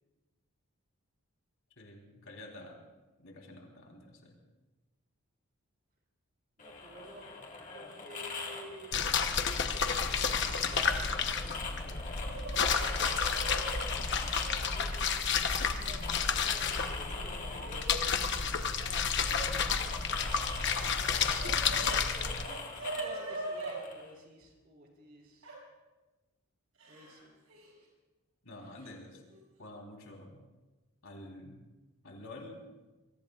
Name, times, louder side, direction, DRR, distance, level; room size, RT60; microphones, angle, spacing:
voice 1, 1.8-2.8 3.2-4.4 12.3-12.6 28.4-29.2 29.6-30.5 31.0-31.6 32.0-32.7, left 1 dB, 70° left, 0 dB, 3.7 m, -49 dB
sound 1, 6.6-24.1, left 4 dB, 35° left, 1.9 m, -43 dB
voice 2, 6.6-7.3 7.6-11.3 13.3-21.0 21.7-25.5 26.9-27.4, right 1 dB, 45° right, -1 dB, 4.2 m, -52 dB
sound 2, 8.9-22.5, left 6 dB, 55° left, 1.0 m, -31 dB
Yell / Crying sobbing, 10.5-10.8 11.1-11.2 12.0-13.8 14.7-14.8 15.8-16.4 16.7-18.0 19.2-19.5 20.6-22.0 22.3-23.8 25.4-25.6 26.8-27.2 27.5-27.7 28.8-28.9 29.3-29.6, right 2 dB, 85° right, 7.0 m, -42 dB
26.0 x 22.5 x 2.4 m, 1.2 s
head